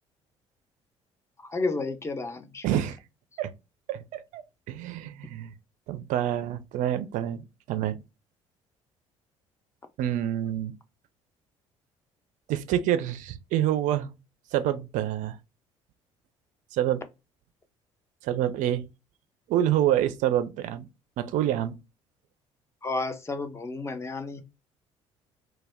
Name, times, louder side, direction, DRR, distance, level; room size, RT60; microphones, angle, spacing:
voice 1, 1.4-2.8 22.8-24.4, left 3 dB, 15° left, 0.5 m, -32 dB
voice 2, 2.6-3.0 3.4-3.5 3.9-4.4 4.7-5.5 5.9-8.0 10.0-10.7 12.5-14.1 14.5-15.4 16.7-17.0 18.2-18.9 19.5-20.9 21.2-21.7, right 11 dB, 50° right, 0.4 m, -27 dB
2.2 x 2.0 x 3.3 m
figure-of-eight pair, 50°, 16 cm